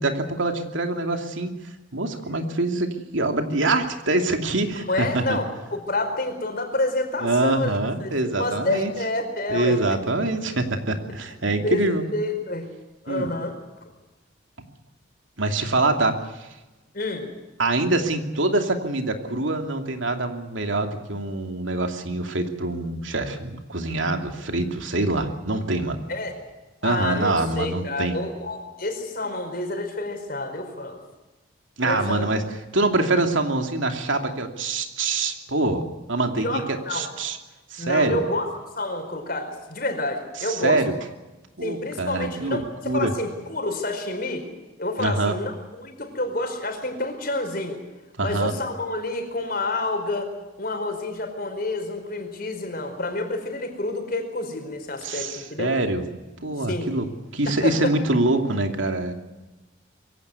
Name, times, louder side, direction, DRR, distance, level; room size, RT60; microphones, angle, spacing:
voice 1, 0.0-1.6 1.9-5.4 7.2-8.9 9.5-12.0 13.1-13.3 15.4-16.5 17.6-26.0 26.8-28.2 31.8-32.4 32.7-37.4 37.7-38.2 40.6-40.9 41.6-42.6 42.8-43.1 45.0-45.3 48.2-48.5 55.0-56.0 56.4-57.1 57.3-59.2, right 2 dB, 75° right, 5 dB, 2.8 m, -24 dB
voice 2, 4.7-5.4 5.7-9.8 10.9-11.0 11.6-12.7 13.0-13.6 16.9-17.3 26.1-26.3 26.8-31.0 31.8-32.3 36.4-37.1 37.8-38.4 38.8-40.8 41.6-44.5 44.8-47.8 48.2-50.3 50.6-55.7 56.7-56.9 57.4-57.9, left 2 dB, 45° left, 5 dB, 4.8 m, -28 dB
23.5 x 17.0 x 9.6 m, 1.1 s
head